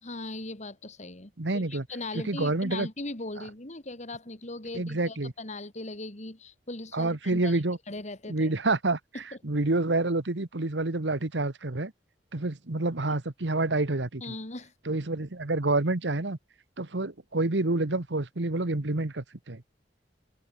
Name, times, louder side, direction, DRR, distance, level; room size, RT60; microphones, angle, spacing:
voice 1, 0.0-7.6 7.9-8.5 9.1-9.4 14.2-14.7, left 2 dB, 40° left, 3.0 m, -39 dB
voice 2, 1.4-1.8 2.2-2.9 4.7-5.3 6.9-7.8 8.3-9.0 9.4-11.9 12.3-14.2 14.9-16.4 16.8-19.6, right 2 dB, 75° right, 1.4 m, -28 dB
open air
head